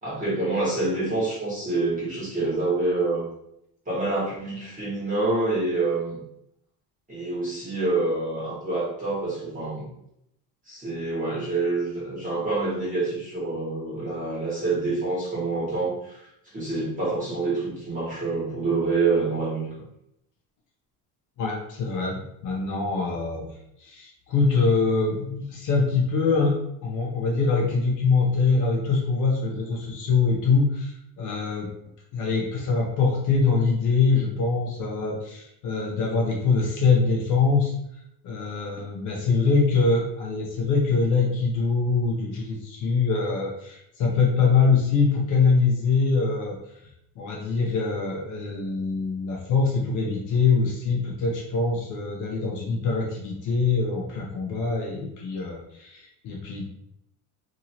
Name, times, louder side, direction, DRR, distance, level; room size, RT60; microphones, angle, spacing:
voice 1, 0.0-3.3 3.9-6.2 7.1-9.9 10.7-16.2 16.5-19.7, right 3 dB, 20° right, -8 dB, 1.2 m, -27 dB
voice 2, 21.4-23.5 23.8-30.9 31.2-31.7 32.1-37.7 38.2-46.6 47.2-56.6, left 4 dB, 50° left, -2 dB, 0.7 m, -23 dB
2.9 x 2.7 x 2.7 m, 0.77 s
cardioid pair, 165°, 40 cm